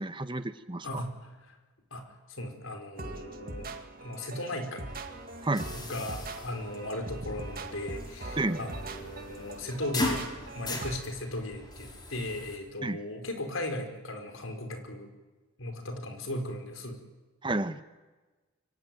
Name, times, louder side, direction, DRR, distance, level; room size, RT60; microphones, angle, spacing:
voice 1, 0.0-1.0 5.4-5.7 8.4-8.6 12.8-13.0 17.4-17.8, right 2 dB, 25° right, 12 dB, 1.0 m, -31 dB
voice 2, 0.8-1.5 1.9-2.0 2.3-3.7 4.0-4.9 5.7-10.2 10.5-15.1 15.6-17.0, left 1 dB, 75° left, 5 dB, 4.9 m, -37 dB
sound 1, 3.0-11.0, right 2 dB, 45° right, 2.1 m, -41 dB
sound 2, 4.9-12.6, left 2 dB, 20° left, 4.3 m, -39 dB
26.5 x 24.0 x 9.4 m, 1.2 s
head